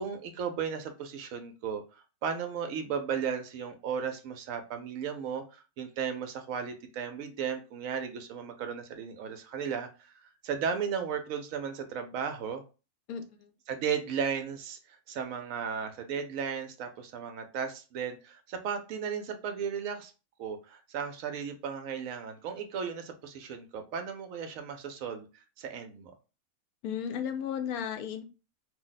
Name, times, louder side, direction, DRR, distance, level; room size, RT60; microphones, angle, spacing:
voice 1, 0.0-12.6 13.7-20.1 20.4-25.3 25.6-26.1, right 7 dB, 70° right, 6 dB, 0.9 m, -35 dB
voice 2, 13.1-13.5 26.8-28.3, left 8 dB, 85° left, 7 dB, 1.1 m, -34 dB
2.7 x 2.0 x 3.8 m, 0.32 s
omnidirectional pair, 1.5 m